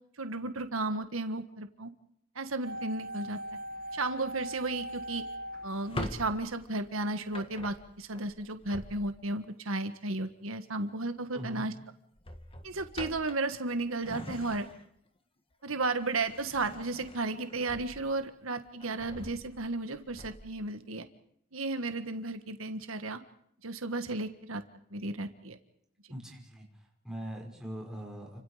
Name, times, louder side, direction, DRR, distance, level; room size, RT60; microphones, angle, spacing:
voice 1, 0.2-1.9 2.3-3.4 3.9-5.2 5.6-11.7 12.6-14.7 15.6-21.1 21.5-23.2 23.6-24.6 24.9-25.6, right 2 dB, 85° right, 9 dB, 1.6 m, -34 dB
sound 1, 2.6-6.7 7.0-7.1, equal, 45° right, 1.3 m, -40 dB
Drawer open or close, 5.7-9.4 10.9-11.2 11.5-11.7 12.2-15.1 15.5-18.3 18.7-20.6, left 1 dB, 25° left, 1.8 m, -44 dB
voice 2, 11.3-11.7 26.1-28.4, equal, 5° right, -1 dB, 5.9 m, -42 dB
30.0 x 25.5 x 5.1 m, 0.70 s
head